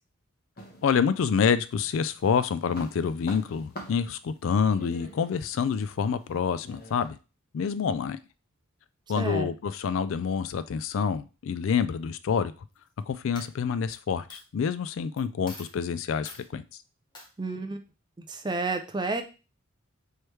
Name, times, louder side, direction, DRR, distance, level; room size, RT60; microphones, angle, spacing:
sound 1, 0.6-1.6 2.0-7.1, left 1 dB, 45° left, 1.0 m, -46 dB
voice 1, 0.8-7.2 7.5-8.2 9.1-12.5 13.1-16.6, left 6 dB, 65° left, 13 dB, 0.3 m, -27 dB
voice 2, 9.2-9.5 17.4-17.8 18.3-19.2, right 3 dB, 20° right, 7 dB, 0.4 m, -30 dB
Coin (dropping), 12.7-13.0 13.3-13.9 14.3-14.4 15.2-15.3 15.5-15.8 16.2-16.5 17.1-17.3, left 2 dB, 20° left, 0.9 m, -45 dB
4.5 x 3.2 x 3.2 m, 0.31 s
head